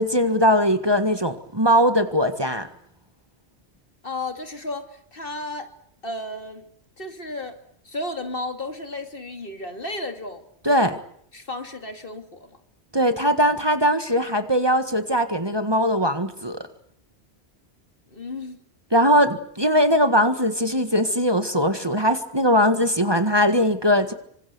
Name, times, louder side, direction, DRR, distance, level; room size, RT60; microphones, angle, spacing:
voice 1, 0.0-2.7 10.6-11.0 12.9-16.7 18.9-24.1, equal, 25° right, 1.7 m, -20 dB
voice 2, 4.0-5.7 6.0-6.7 7.0-7.6 7.8-10.4 11.3-12.6 18.1-18.6, left 2 dB, 55° left, 2.8 m, -33 dB
27.5 x 25.5 x 6.9 m
omnidirectional pair, 1.1 m